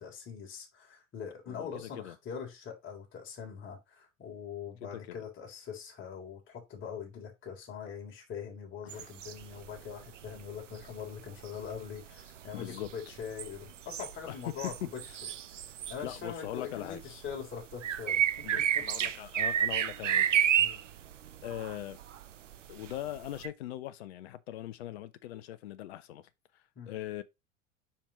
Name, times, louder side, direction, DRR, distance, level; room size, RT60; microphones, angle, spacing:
voice 1, 0.0-15.3 15.9-19.1 20.6-20.8 25.3-25.4 26.8-26.9, left 7 dB, 30° left, 3.6 m, -43 dB
voice 2, 1.5-2.1 5.1-5.2 8.8-9.1 12.5-12.9 14.3-14.4 16.0-17.0 18.4-20.5 21.4-22.0 22.7-27.2, left 13 dB, 55° left, 0.6 m, -41 dB
sound 1, 8.9-9.9 10.2-16.5 16.7-23.5, right 10 dB, 75° right, 0.8 m, -31 dB
7.1 x 5.7 x 3.0 m
figure-of-eight pair, 85°, 38 cm